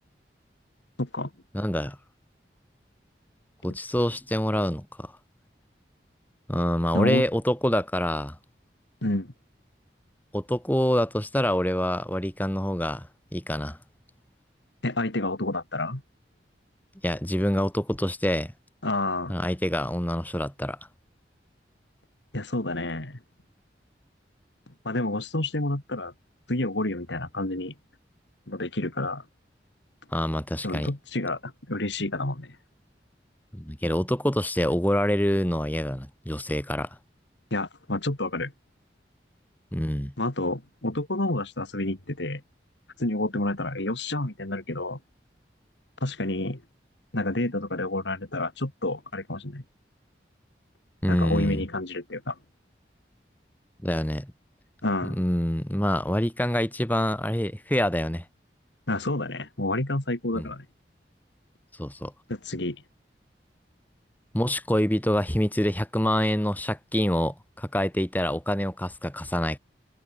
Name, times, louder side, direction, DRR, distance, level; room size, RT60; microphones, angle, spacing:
voice 1, 1.0-1.3 6.9-7.3 9.0-9.3 14.8-16.0 18.8-19.4 22.3-23.2 24.8-26.1 26.5-27.7 28.5-29.2 30.6-32.6 37.5-38.5 40.2-42.4 43.0-45.0 46.0-46.6 47.1-49.6 51.1-52.4 54.8-55.2 58.9-60.7 62.3-62.8, left 2 dB, 85° left, 2.8 m, -29 dB
voice 2, 1.5-2.0 3.6-5.1 6.5-8.4 10.3-13.8 17.0-18.5 19.3-20.8 30.1-30.9 33.5-36.9 39.7-40.1 51.0-51.6 53.8-54.3 55.0-58.3 60.3-60.5 61.8-62.1 64.3-69.6, equal, 10° left, 2.4 m, -26 dB
head